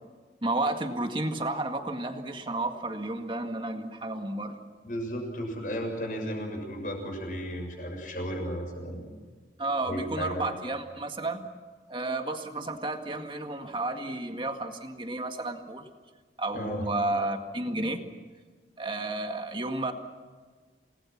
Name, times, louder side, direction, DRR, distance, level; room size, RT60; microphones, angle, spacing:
voice 1, 0.4-4.6 9.6-11.4 11.9-15.9 16.4-18.0 18.8-19.9, right 2 dB, 30° right, 5 dB, 1.9 m, -32 dB
voice 2, 4.8-9.1 9.9-10.4 16.5-16.9, equal, 50° left, 2 dB, 6.8 m, -34 dB
29.0 x 20.0 x 6.1 m, 1.5 s
head